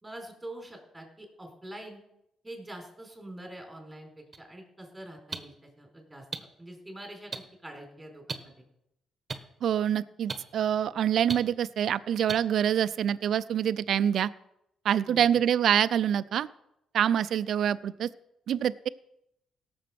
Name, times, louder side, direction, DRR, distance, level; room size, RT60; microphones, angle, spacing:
voice 1, 0.0-2.0 2.4-6.3 6.6-8.6 15.0-15.4, right 1 dB, 10° right, 3 dB, 4.2 m, -45 dB
sound 1, 4.3-4.4 5.3-5.4 6.3-6.4 7.3-7.4 8.3-8.4 9.3-9.4 10.3-10.4 11.3-11.4 12.3-12.4, right 4 dB, 35° right, 1.3 m, -32 dB
voice 2, 9.6-14.3 14.8-16.5 16.9-18.1 18.5-18.9, right 9 dB, 65° right, 16 dB, 0.5 m, -26 dB
17.0 x 7.1 x 6.1 m, 0.81 s
cardioid pair, 90°, 0 cm